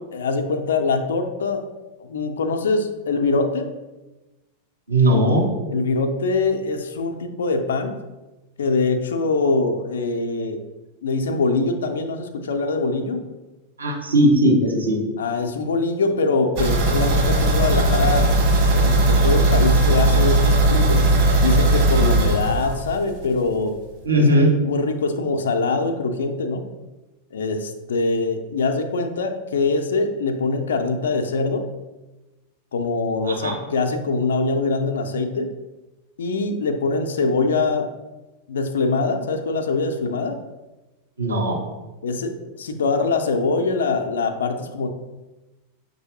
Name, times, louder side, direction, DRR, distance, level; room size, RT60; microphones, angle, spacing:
voice 1, 0.1-1.6 2.0-3.7 5.7-8.0 8.6-10.6 11.0-13.2 15.2-21.0 21.4-23.7 24.1-26.6 27.3-31.7 32.7-35.5 36.2-37.9 38.5-40.4 42.0-44.9, left 3 dB, 65° left, 6 dB, 0.4 m, -23 dB
voice 2, 4.9-5.4 13.8-15.0 24.0-24.5 33.3-33.6 41.2-41.6, right 1 dB, 75° right, -2 dB, 1.0 m, -18 dB
sound 1, 16.6-23.2 23.5-23.6 24.0-24.1, right 2 dB, 45° right, 1.1 m, -18 dB
6.1 x 2.6 x 2.7 m, 1.1 s
figure-of-eight pair, 90°, 0 cm